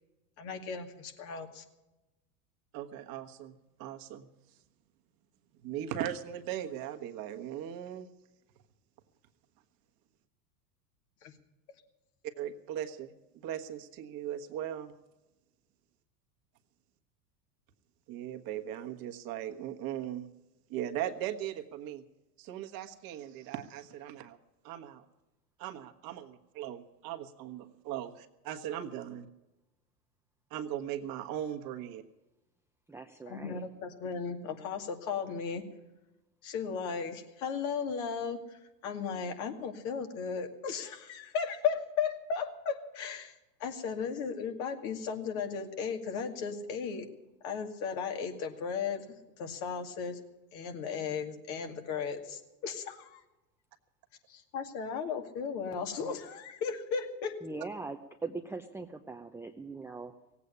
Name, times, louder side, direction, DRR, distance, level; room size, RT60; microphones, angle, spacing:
voice 1, 0.4-1.6 11.2-11.3 33.3-35.6 36.4-43.3 43.6-47.0 47.4-49.0 49.4-50.2 50.5-53.2 54.3-57.3, left 6 dB, 55° left, 5 dB, 2.4 m, -35 dB
voice 2, 2.7-4.3 5.6-8.1 12.4-13.1 13.4-14.9 18.1-20.2 20.7-22.0 22.4-24.4 24.6-25.0 25.6-29.3 30.5-32.0, right 11 dB, 45° right, 6 dB, 1.4 m, -38 dB
voice 3, 32.9-33.6 57.4-60.1, right 3 dB, 5° right, 4 dB, 0.6 m, -41 dB
17.5 x 8.4 x 9.8 m, 1.0 s
hypercardioid pair, 95°, 50 cm